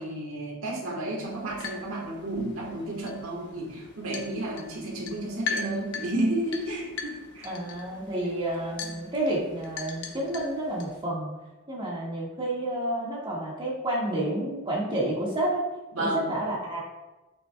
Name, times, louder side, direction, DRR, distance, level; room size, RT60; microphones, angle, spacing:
voice 1, 0.0-7.5 15.9-16.3, right 1 dB, 80° right, -1 dB, 1.5 m, -32 dB
sound 1, 1.2-11.0, left 5 dB, 55° left, 1.0 m, -40 dB
voice 2, 7.4-11.3 11.7-15.6 16.0-16.8, right 1 dB, 25° right, -5 dB, 1.6 m, -30 dB
7.8 x 6.7 x 2.2 m, 1.1 s
head